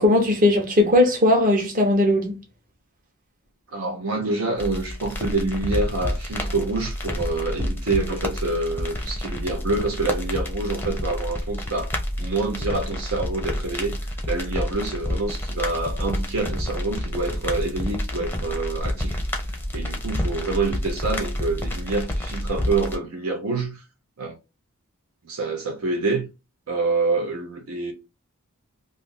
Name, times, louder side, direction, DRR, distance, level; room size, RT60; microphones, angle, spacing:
voice 1, 0.0-2.3, left 1 dB, 40° right, 0.9 m, -18 dB
voice 2, 3.7-11.9 12.2-14.0 14.3-19.2 19.7-23.8 24.2-24.4 25.2-26.3 26.7-27.9, right 3 dB, 70° right, 0.7 m, -27 dB
sound 1, 4.6-23.0, left 1 dB, 10° left, 0.6 m, -29 dB
2.6 x 2.5 x 3.6 m
head